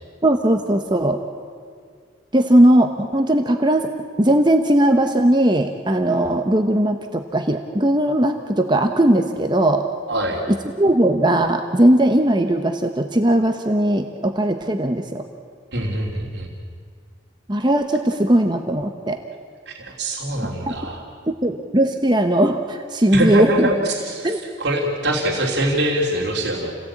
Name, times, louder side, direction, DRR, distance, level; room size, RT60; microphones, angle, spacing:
voice 1, 0.2-1.2 2.3-3.9 4.2-9.8 10.8-15.2 17.5-19.2 20.7-20.8 21.3-23.7 24.2-24.4, right 1 dB, 25° right, 5 dB, 1.1 m, -18 dB
voice 2, 10.1-10.4 15.7-16.5 19.7-21.0 23.1-26.7, right 1 dB, 60° right, -1 dB, 3.1 m, -23 dB
29.0 x 17.5 x 8.7 m, 2.1 s
head